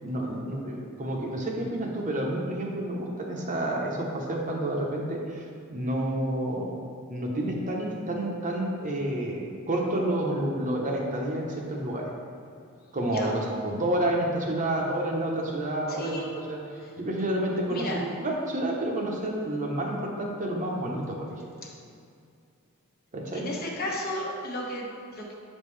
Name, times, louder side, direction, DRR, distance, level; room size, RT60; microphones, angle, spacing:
voice 1, 0.0-5.4 5.7-6.8 7.1-12.1 12.9-21.2 23.1-23.5, right 1 dB, 40° right, -1 dB, 0.9 m, -29 dB
voice 2, 15.9-16.3 16.8-16.9 17.7-18.0 23.3-25.3, left 1 dB, 45° left, -2 dB, 1.1 m, -34 dB
7.8 x 5.4 x 3.3 m, 2.3 s
head